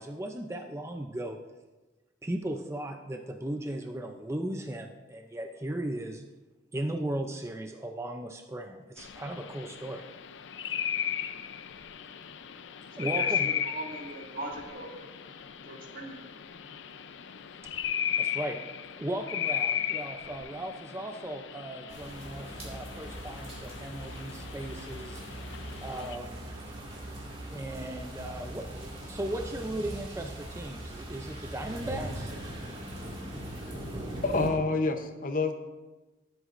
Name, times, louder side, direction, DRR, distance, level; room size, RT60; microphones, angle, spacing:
voice 1, 0.0-1.4 2.2-6.3 6.7-10.0 13.0-13.5 18.2-18.6 19.0-25.2 25.8-26.4 27.5-32.3, right 1 dB, 15° right, 4 dB, 0.5 m, -37 dB
sound 1, 9.0-26.2, left 9 dB, 70° left, 0.5 m, -36 dB
voice 2, 13.0-13.3 13.7-15.1 15.6-16.2, right 2 dB, 45° right, 0 dB, 1.9 m, -40 dB
sound 2, 21.9-34.5, right 1 dB, 30° right, 2.1 m, -40 dB
voice 3, 34.2-35.5, left 3 dB, 45° left, 7 dB, 0.8 m, -27 dB
23.0 x 7.9 x 2.6 m, 1.2 s
head